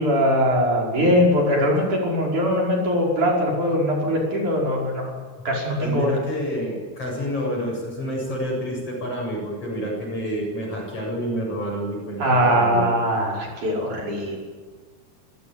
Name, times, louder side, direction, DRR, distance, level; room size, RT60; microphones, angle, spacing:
voice 1, 0.0-5.1 5.4-6.1 12.2-14.4, equal, 50° right, -2 dB, 6.6 m, -21 dB
voice 2, 5.8-12.9, equal, 35° left, 0 dB, 8.6 m, -28 dB
27.5 x 16.5 x 9.1 m, 1.5 s
omnidirectional pair, 4.7 m